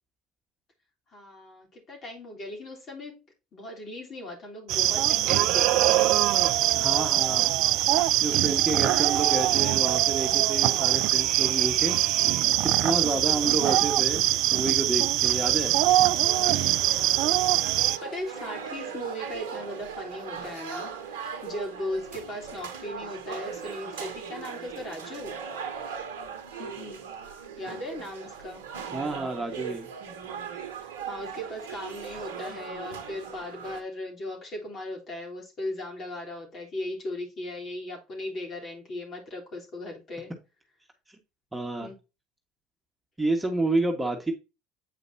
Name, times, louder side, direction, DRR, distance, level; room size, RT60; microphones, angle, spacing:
voice 1, 1.1-3.2 3.5-6.1 13.1-13.6 16.0-16.7 16.9-25.4 26.6-27.1 27.6-28.6 30.8-40.3 41.8-42.0, left 1 dB, 40° left, 3.6 m, -38 dB
sound 1, 4.7-18.0, right 14 dB, 60° right, 0.4 m, -23 dB
voice 2, 6.7-7.6 8.2-12.0 12.6-15.8 28.9-29.9 41.5-41.9 43.2-44.3, right 2 dB, 15° right, 1.7 m, -29 dB
sound 2, 16.2-33.8, right 7 dB, 80° right, 1.0 m, -39 dB
8.5 x 5.1 x 2.8 m
hypercardioid pair, 70°, 0 cm